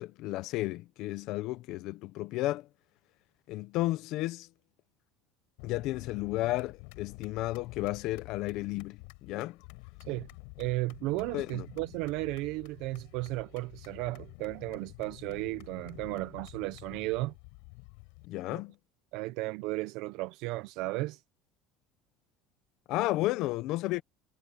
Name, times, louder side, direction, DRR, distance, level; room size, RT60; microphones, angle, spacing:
voice 1, 0.0-2.7 3.5-4.5 5.6-9.6 11.3-11.7 18.3-18.7 22.9-24.0, left 17 dB, 60° left, 0.8 m, -33 dB
sound 1, 5.6-18.3, left 40 dB or more, 80° left, 7.8 m, -49 dB
voice 2, 10.6-17.3 19.1-21.2, right 20 dB, 70° right, 0.8 m, -34 dB
cardioid pair, 135°, 0 cm